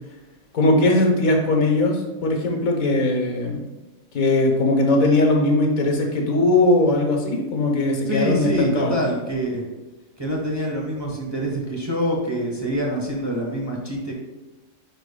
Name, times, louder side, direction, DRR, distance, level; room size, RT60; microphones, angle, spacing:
voice 1, 0.5-3.6 4.1-9.1, left 2 dB, 75° left, 1 dB, 1.5 m, -19 dB
voice 2, 8.1-9.6 10.2-14.1, equal, 20° right, -2 dB, 0.9 m, -25 dB
9.9 x 4.4 x 2.2 m, 1.1 s
omnidirectional pair, 1.5 m